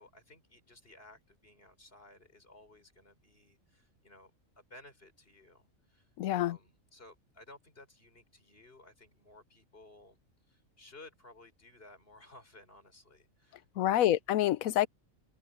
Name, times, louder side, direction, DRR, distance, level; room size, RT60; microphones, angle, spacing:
voice 1, 0.0-4.3 4.6-10.2 10.5-14.2, left 2 dB, 45° left, 6.4 m, -57 dB
voice 2, 6.2-6.6 13.8-14.9, left 13 dB, 85° left, 1.1 m, -27 dB
omnidirectional pair, 1.4 m